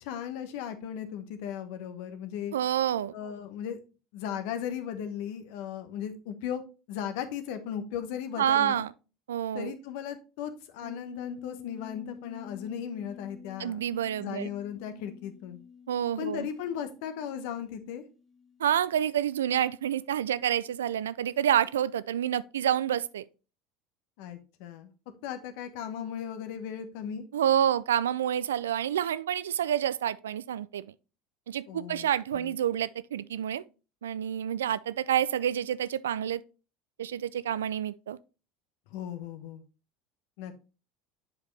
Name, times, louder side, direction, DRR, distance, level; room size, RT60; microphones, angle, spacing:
voice 1, 0.0-2.5 3.1-3.8 4.1-6.6 6.9-8.8 9.5-13.8 14.2-15.6 16.2-18.1 24.2-24.9 25.2-27.3 31.7-32.6 38.9-39.6 40.4-40.6, left 9 dB, 65° left, 1.0 m, -37 dB
voice 2, 2.5-3.2 8.4-8.9 9.3-9.7 13.6-14.5 15.9-16.5 18.6-23.2 27.3-30.9 31.5-33.6 34.0-36.4 37.0-38.2, right 10 dB, 80° right, 0.3 m, -28 dB
sound 1, 10.8-19.1 19.4-19.5, left 6 dB, 15° left, 2.9 m, -49 dB
7.7 x 4.9 x 3.2 m
hypercardioid pair, 75°, 0 cm